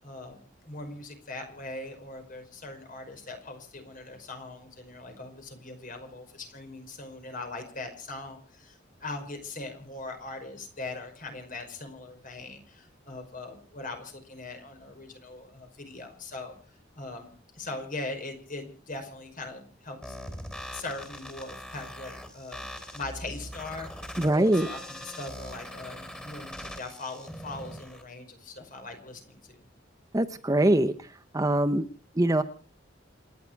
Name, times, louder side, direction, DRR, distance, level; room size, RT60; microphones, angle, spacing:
voice 1, 0.0-16.5 17.0-17.3 17.6-20.2 20.7-22.7 22.9-29.6, left 2 dB, 45° left, 5 dB, 5.3 m, -41 dB
sound 1, 20.0-28.0, equal, 5° left, 3.4 m, -41 dB
voice 2, 24.2-24.7 30.1-30.9 31.3-31.9 32.2-32.4, right 1 dB, 20° right, 10 dB, 0.8 m, -23 dB
28.0 x 10.5 x 4.7 m, 0.42 s
head